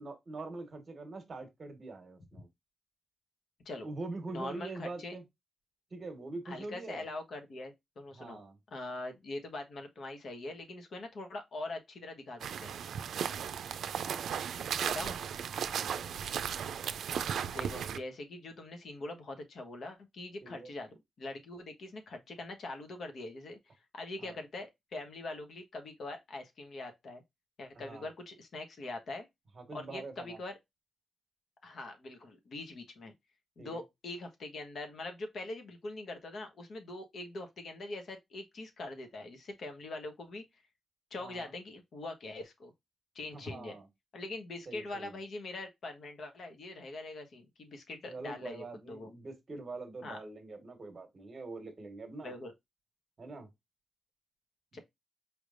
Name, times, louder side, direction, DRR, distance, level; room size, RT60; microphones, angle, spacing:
voice 1, 0.0-2.5 3.8-5.2 5.9-7.0 8.1-8.6 14.1-14.4 15.6-16.1 20.4-20.7 24.2-24.4 27.7-28.0 29.5-30.4 33.6-33.8 41.2-41.5 43.3-43.9 44.7-45.2 48.1-52.4 53.2-53.5 54.7-54.8, right 3 dB, 40° right, 1.4 m, -44 dB
voice 2, 4.3-5.1 6.5-8.4 8.7-12.7 14.8-15.2 17.5-23.6 23.9-27.2 27.6-29.3 29.7-30.6 31.6-33.1 33.6-40.4 41.1-42.7 43.1-43.8 44.1-49.1 50.0-50.2 52.2-52.5 54.7-54.8, left 2 dB, 65° left, 1.2 m, -43 dB
sound 1, 12.4-18.0, right 8 dB, 90° right, 0.4 m, -36 dB
4.9 x 3.3 x 2.5 m
wide cardioid pair, 125°, 0 cm